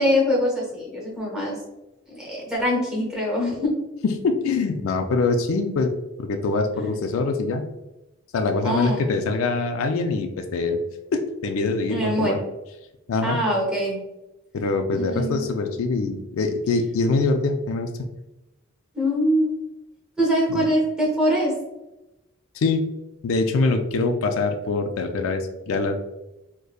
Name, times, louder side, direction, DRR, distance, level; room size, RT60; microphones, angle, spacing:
voice 1, 0.0-1.6 2.1-3.7 6.7-6.9 8.6-9.1 11.9-12.4 13.2-14.0 14.9-15.4 18.9-19.6 20.2-21.5, equal, 5° right, -4 dB, 0.9 m, -23 dB
voice 2, 4.0-5.9 6.2-7.6 8.3-10.8 11.1-12.4 13.1-13.4 14.5-17.9 20.5-20.7 22.5-22.9 23.2-26.2, left 3 dB, 70° left, 6 dB, 0.3 m, -24 dB
5.0 x 2.1 x 2.3 m, 0.97 s
head